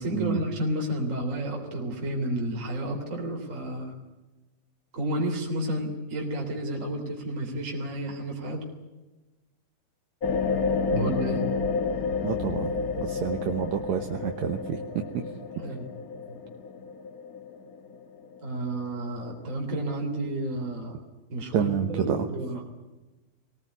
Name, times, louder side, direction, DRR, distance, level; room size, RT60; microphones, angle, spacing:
voice 1, 0.0-4.0 4.9-8.6 10.9-11.4 15.6-15.9 16.3-16.4 18.4-21.0 21.3-22.7, right 1 dB, 20° right, 2 dB, 3.4 m, -31 dB
sound 1, 10.2-19.0 19.5-19.6, left 5 dB, 80° left, 0.8 m, -30 dB
voice 2, 12.2-12.7 13.0-15.0 21.5-22.3, right 8 dB, 65° right, 5 dB, 2.1 m, -29 dB
22.0 x 18.5 x 9.7 m, 1.1 s
omnidirectional pair, 4.1 m